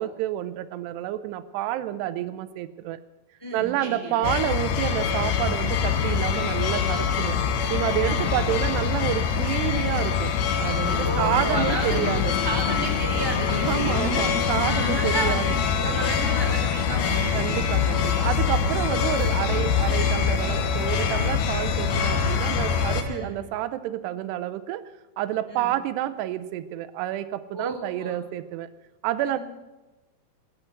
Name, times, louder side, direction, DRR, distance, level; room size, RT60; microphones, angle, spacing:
voice 1, 0.0-3.0 3.5-7.4 7.7-10.3 10.6-12.3 13.5-15.5 17.3-24.8 25.2-28.7 29.0-29.4, right 13 dB, 90° right, 13 dB, 2.8 m, -29 dB
voice 2, 3.4-4.2 8.0-8.4 11.0-14.3 14.6-18.2 23.0-23.3 25.5-25.7 27.5-28.2 29.2-29.4, right 2 dB, 5° left, 0 dB, 2.2 m, -33 dB
sound 1, 4.2-23.0, left 6 dB, 70° left, 3.0 m, -24 dB
17.5 x 10.5 x 7.9 m, 1.1 s
omnidirectional pair, 4.7 m